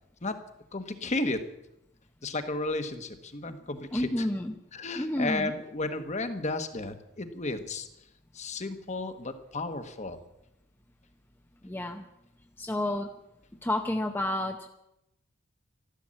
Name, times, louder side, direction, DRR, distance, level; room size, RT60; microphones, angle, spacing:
voice 1, 0.7-1.4 2.2-4.3 4.7-7.9 8.3-10.2, left 2 dB, 30° left, 8 dB, 1.2 m, -33 dB
voice 2, 3.9-4.5 4.9-5.5 11.6-12.0 12.6-13.1 13.6-14.7, left 1 dB, 10° left, 3 dB, 0.7 m, -30 dB
14.0 x 12.5 x 7.6 m, 0.85 s
head